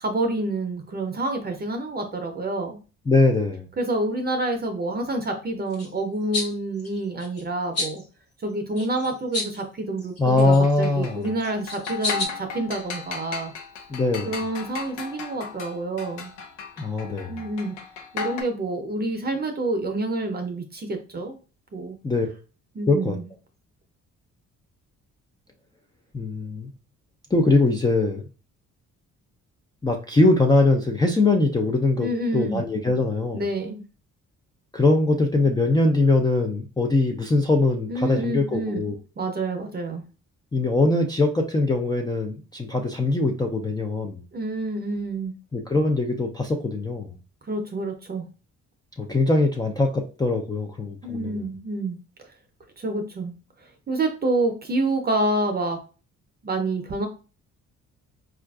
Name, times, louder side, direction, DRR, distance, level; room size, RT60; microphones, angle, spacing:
voice 1, 0.0-2.8 3.8-8.0 8.4-13.5 14.3-16.3 17.3-17.7 18.1-21.4 21.7-22.0 22.7-23.3 32.0-32.6 33.3-33.8 37.9-38.8 39.2-40.0 44.3-45.3 47.5-48.3 51.0-52.0 52.8-53.3 53.9-55.8 56.4-57.1, right 2 dB, 30° right, 0.6 m, -28 dB
voice 2, 3.1-3.7 10.2-11.3 13.9-14.3 16.8-17.5 22.0-22.3 22.9-23.2 26.1-26.7 27.3-28.2 29.8-33.4 34.7-39.0 40.5-44.2 45.5-47.1 49.0-51.5, left 2 dB, 15° left, 0.4 m, -22 dB
sound 1, 5.7-5.9 6.3-6.5 6.8-7.4 7.7-8.0 8.8-9.6 10.0-10.8 11.4-12.3, left 2 dB, 50° left, 1.3 m, -30 dB
sound 2, 10.4-18.4, left 6 dB, 90° left, 0.7 m, -36 dB
4.4 x 2.4 x 2.3 m
cardioid pair, 90°, 30 cm